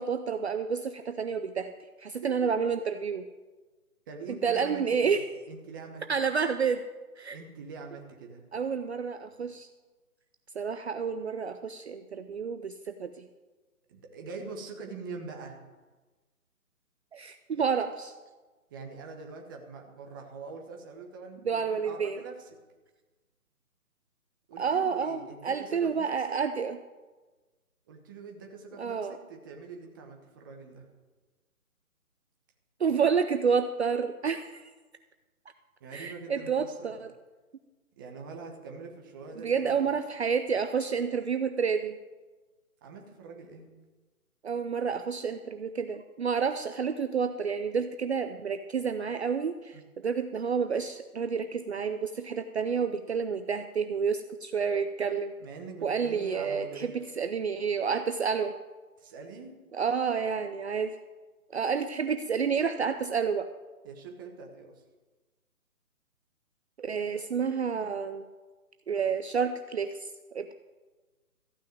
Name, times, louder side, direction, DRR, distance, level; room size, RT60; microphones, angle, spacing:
voice 1, 0.0-1.7 2.0-3.2 4.3-5.2 6.1-6.8 7.2-7.4 8.5-9.7 10.6-13.2 17.1-18.1 21.4-22.2 24.6-25.2 25.4-26.8 28.8-29.2 32.8-34.6 35.9-37.1 39.4-42.0 44.4-55.3 55.8-58.5 59.7-61.0 61.5-63.5 66.8-68.3 68.9-70.5, right 6 dB, 45° right, 9 dB, 0.6 m, -29 dB
voice 2, 4.1-5.1 5.5-6.0 7.3-8.4 13.9-15.6 18.7-22.5 24.5-26.4 27.9-30.9 35.8-37.0 38.0-39.8 42.8-43.7 49.7-49.8 55.4-56.9 59.0-59.5 63.8-64.8, right 4 dB, 15° right, 1 dB, 1.0 m, -44 dB
14.5 x 6.3 x 9.2 m, 1.2 s
hypercardioid pair, 160°, 44 cm